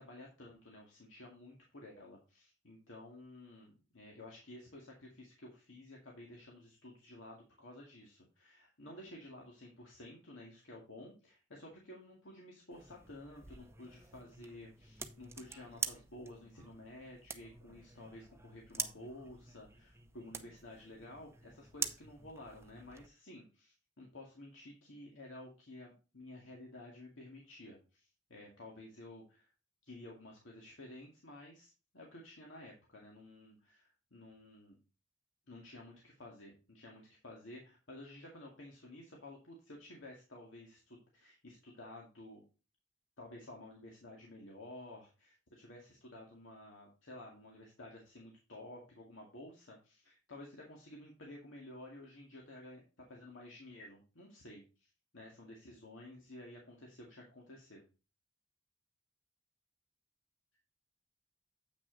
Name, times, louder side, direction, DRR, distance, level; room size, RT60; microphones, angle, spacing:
voice 1, 0.0-29.5 29.8-34.8 35.5-42.4 43.2-52.8 53.1-57.8, left 1 dB, 75° left, -1 dB, 2.1 m, -53 dB
sound 1, 12.7-23.1, right 5 dB, 15° right, 0.7 m, -46 dB
8.4 x 6.2 x 3.9 m, 0.32 s
head